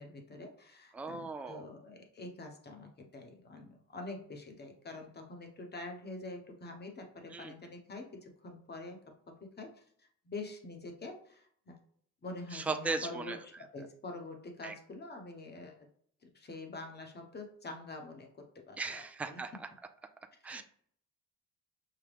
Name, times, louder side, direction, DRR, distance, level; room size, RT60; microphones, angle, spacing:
voice 1, 0.0-9.0 9.3-11.8 12.2-13.4 13.7-15.8 16.2-18.3 18.5-19.4 20.5-20.6, left 2 dB, 35° left, 3 dB, 1.1 m, -46 dB
voice 2, 0.9-1.6 7.3-7.5 12.5-13.4 14.6-14.7 18.8-19.7 20.4-20.6, right 4 dB, 5° right, 6 dB, 0.4 m, -37 dB
5.7 x 2.2 x 3.4 m, 0.63 s
cardioid pair, 90°, 30 cm